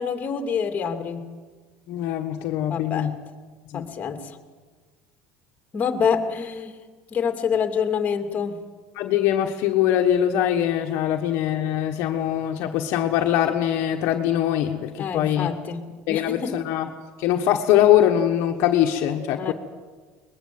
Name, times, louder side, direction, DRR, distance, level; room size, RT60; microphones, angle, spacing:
voice 1, 0.0-1.3 2.7-3.1 3.7-4.4 5.7-6.8 7.1-8.6 15.0-16.6 19.4-19.5, left 6 dB, 30° left, 6 dB, 2.5 m, -27 dB
voice 2, 1.9-3.1 3.7-3.9 8.9-15.5 16.1-16.9 17.2-19.5, left 11 dB, 65° left, 3 dB, 1.4 m, -22 dB
22.0 x 20.5 x 7.7 m, 1.4 s
supercardioid pair, 120°, 5 cm